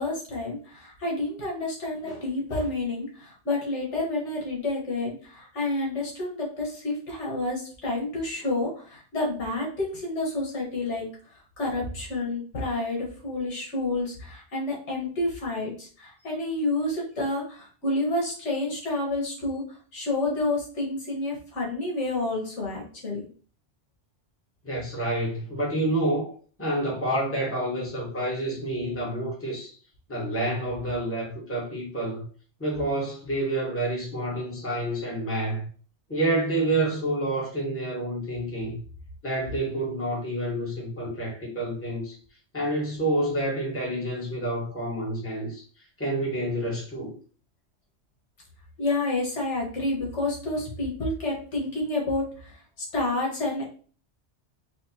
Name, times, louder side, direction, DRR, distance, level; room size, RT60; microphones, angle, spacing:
voice 1, 0.0-11.0 11.3-23.3 48.8-53.7, left 2 dB, 80° left, -3 dB, 1.6 m, -29 dB
voice 2, 24.6-29.8 30.1-32.2 32.6-35.7 36.1-38.8 39.2-42.2 42.5-45.6 46.0-47.1, right 1 dB, 10° left, -4 dB, 1.2 m, -28 dB
4.3 x 2.4 x 2.8 m, 0.42 s
omnidirectional pair, 1.2 m